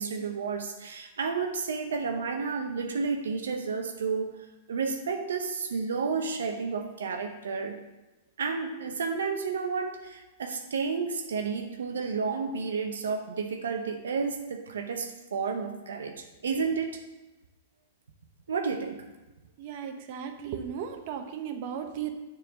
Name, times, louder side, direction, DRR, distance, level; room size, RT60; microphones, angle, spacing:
voice 1, 0.0-7.8 8.4-17.0 18.5-19.1, right 5 dB, 85° right, 5 dB, 0.6 m, -31 dB
voice 2, 19.6-22.1, right 8 dB, 50° right, 6 dB, 0.8 m, -36 dB
6.7 x 3.8 x 6.1 m, 1.1 s
hypercardioid pair, 125°, 0 cm